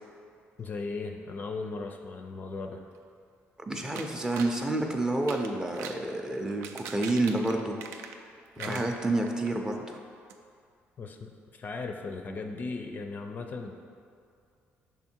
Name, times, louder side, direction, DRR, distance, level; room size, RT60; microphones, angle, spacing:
voice 1, 0.6-2.8 8.6-8.8 11.0-13.7, left 3 dB, 40° left, 4 dB, 0.4 m, -37 dB
voice 2, 3.7-7.8 8.6-10.0, right 2 dB, 15° right, 3 dB, 0.5 m, -29 dB
sound 1, 3.9-4.6 5.1-6.0 6.5-8.3 8.6-9.5 9.9-10.0 10.3-10.4, right 6 dB, 85° right, 0.4 m, -42 dB
5.8 x 3.6 x 4.4 m, 2.3 s
cardioid pair, 115°, 4 cm